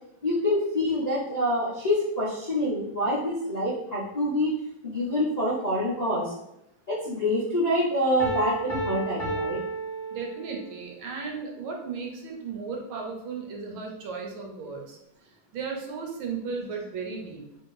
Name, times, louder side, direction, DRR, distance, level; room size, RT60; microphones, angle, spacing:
voice 1, 0.2-4.6 4.8-6.3 6.9-9.6, left 1 dB, 50° left, -9 dB, 0.5 m, -26 dB
Piano, 8.2-10.8, right 2 dB, ahead, 0.6 m, -32 dB
voice 2, 10.1-17.4, right 5 dB, 75° right, 1 dB, 1.6 m, -35 dB
3.5 x 2.9 x 4.7 m, 0.85 s
omnidirectional pair, 2.3 m